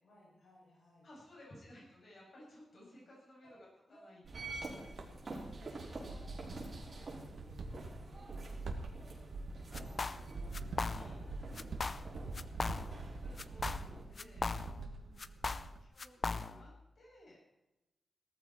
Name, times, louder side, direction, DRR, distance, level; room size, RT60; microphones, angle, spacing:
voice 1, 0.0-1.1 2.7-3.0 3.4-3.5 3.9-4.1 4.5-9.3 9.6-11.3 11.7-12.5 14.2-15.3, left 1 dB, 75° left, -5 dB, 7.1 m, -64 dB
voice 2, 1.0-4.6 5.7-6.2 10.9-11.5 12.1-12.4 12.8-14.5 15.8-17.4, left 1 dB, 50° left, -4 dB, 7.8 m, -58 dB
sound 1, 4.2-15.8, right 3 dB, 85° right, 2.0 m, -45 dB
sound 2, 4.3-14.0, right 2 dB, 35° right, 5.1 m, -48 dB
sound 3, 9.7-10.3 10.5-11.3 11.6-12.1 12.3-13.1 13.4-14.9 15.2-16.7, left 3 dB, 35° left, 0.6 m, -38 dB
18.5 x 14.0 x 4.6 m, 0.95 s
wide cardioid pair, 170°, 0 cm